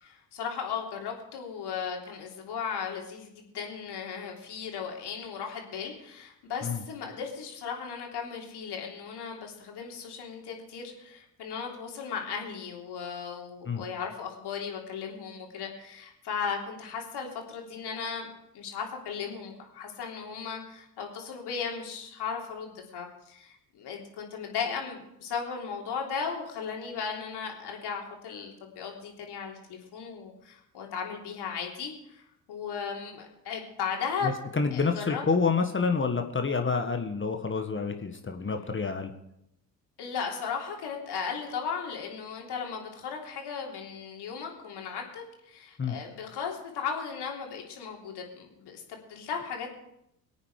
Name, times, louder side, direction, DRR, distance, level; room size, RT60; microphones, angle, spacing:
voice 1, 0.0-32.2 32.5-34.3 34.7-35.2 40.0-49.7, left 6 dB, 55° left, 1 dB, 3.4 m, -36 dB
voice 2, 34.2-39.1 45.8-46.0, left 4 dB, 25° left, 6 dB, 1.7 m, -28 dB
22.5 x 8.9 x 4.9 m, 0.81 s
hypercardioid pair, 55°, 48 cm